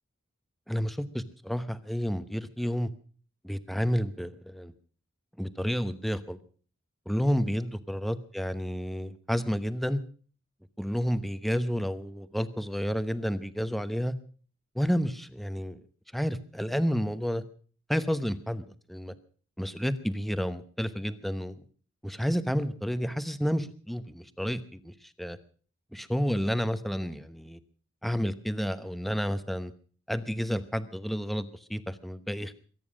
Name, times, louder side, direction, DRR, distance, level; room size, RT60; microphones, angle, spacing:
voice 1, 0.7-2.9 3.4-4.7 5.4-6.4 7.1-10.0 10.8-14.1 14.7-15.8 16.1-17.4 17.9-19.1 19.6-21.6 22.0-25.4 25.9-27.6 28.0-29.7 30.1-32.5, equal, ahead, 12 dB, 0.9 m, -30 dB
23.0 x 9.5 x 6.3 m, 0.43 s
head